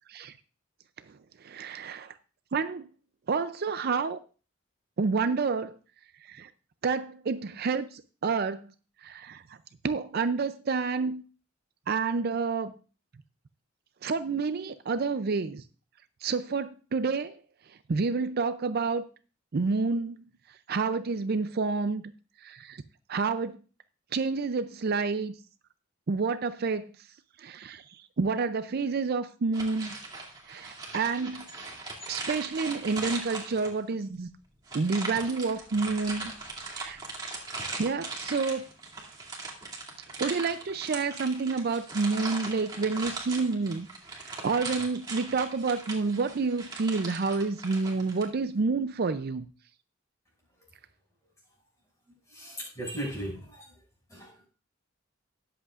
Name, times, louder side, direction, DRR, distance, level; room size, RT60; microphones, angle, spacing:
voice 1, 1.4-2.1 2.5-2.9 3.3-4.2 5.0-5.8 6.2-6.5 6.8-8.7 9.0-9.6 9.8-11.2 11.9-12.7 14.0-15.6 16.2-17.4 17.9-19.0 19.5-20.2 20.7-22.1 22.4-22.8 23.1-23.6 24.1-25.3 26.1-26.9 27.4-29.9 30.5-31.5 32.1-34.3 34.7-36.3 36.6-37.0 37.8-38.6 40.2-43.9 44.1-49.5, right 4 dB, 50° right, 0.5 m, -29 dB
sound 1, 29.5-33.9 34.7-48.3, right 3 dB, 20° right, 2.4 m, -39 dB
voice 2, 52.3-53.6 54.1-54.3, right 1 dB, 15° left, 6.0 m, -37 dB
19.0 x 8.0 x 2.4 m
head